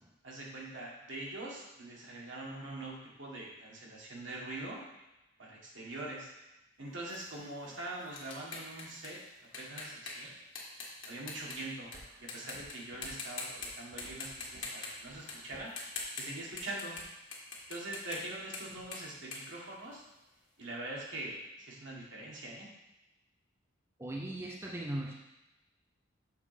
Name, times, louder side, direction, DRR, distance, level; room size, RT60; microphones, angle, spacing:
voice 1, 0.2-4.8 5.4-6.3 6.8-9.2 9.6-10.3 11.0-11.9 12.2-15.7 16.2-17.0 17.7-20.0 20.6-22.7, right 2 dB, 70° right, -4 dB, 1.8 m, -43 dB
sound 1, 7.1-12.0 12.3-12.7 13.0-13.7 14.0-20.3, left 4 dB, 70° left, 1.5 m, -44 dB
sound 2, 11.9-17.1, right 1 dB, 50° right, 1.2 m, -57 dB
voice 2, 24.0-25.1, right 1 dB, 15° right, -1 dB, 0.5 m, -38 dB
7.0 x 3.8 x 5.1 m, 0.97 s
head